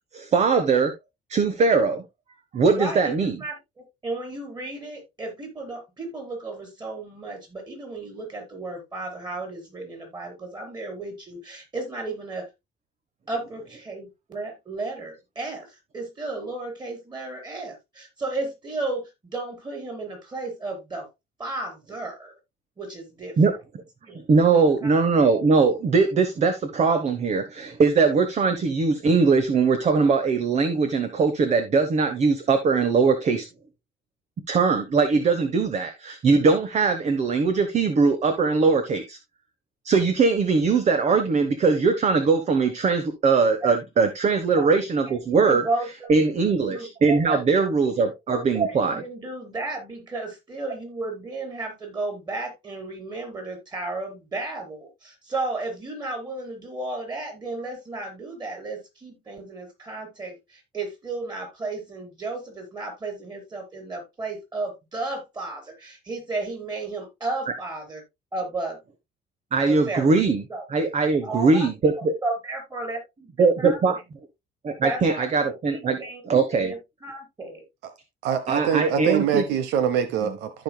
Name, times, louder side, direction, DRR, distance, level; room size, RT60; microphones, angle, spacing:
voice 1, 0.1-0.9 1.3-2.0 2.5-3.4 23.4-23.5 24.3-33.5 34.5-39.2 39.8-45.6 46.1-49.0 69.5-70.4 70.7-71.9 73.4-74.0 74.6-76.7 78.5-79.4, right 4 dB, 40° right, 1.2 m, -21 dB
voice 2, 2.7-12.5 13.3-21.1 21.4-22.3 22.8-23.4 24.0-24.2 24.5-25.0 43.6-43.7 44.5-44.7 45.0-46.2 46.4-47.4 48.3-68.0 68.3-68.8 69.7-70.1 70.5-70.6 71.2-71.7 72.2-73.3 73.6-73.8 74.8-76.2 76.5-77.6, right 2 dB, 25° right, 4.7 m, -33 dB
voice 3, 78.2-80.6, right 8 dB, 85° right, 1.0 m, -24 dB
14.5 x 5.2 x 2.3 m
cardioid pair, 110°, 17 cm